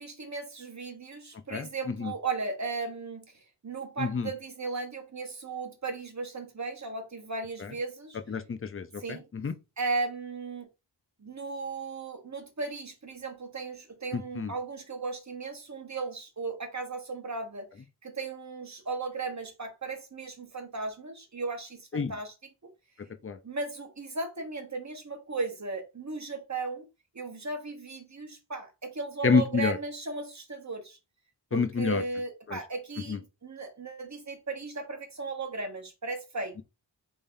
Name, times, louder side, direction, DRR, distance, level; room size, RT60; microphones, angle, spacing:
voice 1, 0.0-3.2 3.6-8.2 9.0-9.3 9.8-10.7 11.2-17.7 18.0-22.3 22.6-22.7 23.4-26.8 27.1-31.0 31.5-36.6, right 3 dB, 40° right, 1.1 m, -36 dB
voice 2, 1.5-2.1 4.0-4.3 8.3-9.5 14.1-14.5 21.9-22.1 23.2-23.4 29.2-29.8 31.5-32.0 32.5-32.6 33.1-33.2, left 5 dB, 30° left, 0.5 m, -28 dB
3.6 x 3.4 x 2.6 m
wide cardioid pair, 65°, 43 cm